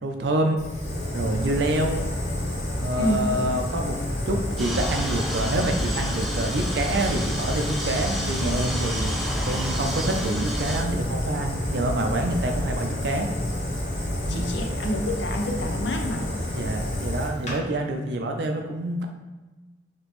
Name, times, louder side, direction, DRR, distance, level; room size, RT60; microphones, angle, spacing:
voice 1, 0.0-0.6 1.1-2.0 2.8-4.0 4.3-13.3 14.2-14.5 16.5-19.1, right 1 dB, 70° right, 3 dB, 0.4 m, -27 dB
Fire, 0.6-17.6, left 1 dB, 40° left, 0.8 m, -29 dB
sound 1, 4.6-10.8, equal, ahead, 0.5 m, -31 dB
voice 2, 14.3-16.2, left 1 dB, 85° left, 2 dB, 0.6 m, -28 dB
5.1 x 2.9 x 3.0 m, 1.2 s
head